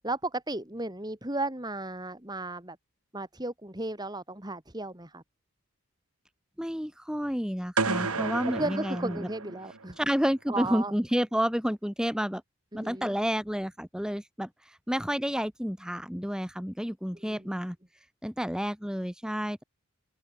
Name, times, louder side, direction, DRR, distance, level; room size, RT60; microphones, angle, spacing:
voice 1, 0.0-2.8 3.1-5.2 8.0-8.3 8.6-10.0 10.5-10.9 12.7-13.2 17.1-17.5, right 2 dB, 20° right, 3.0 m, -35 dB
voice 2, 6.6-9.3 10.0-12.4 12.7-19.6, equal, 5° right, 2.5 m, -30 dB
sound 1, 7.8-9.9, right 4 dB, 85° right, 2.8 m, -31 dB
open air
head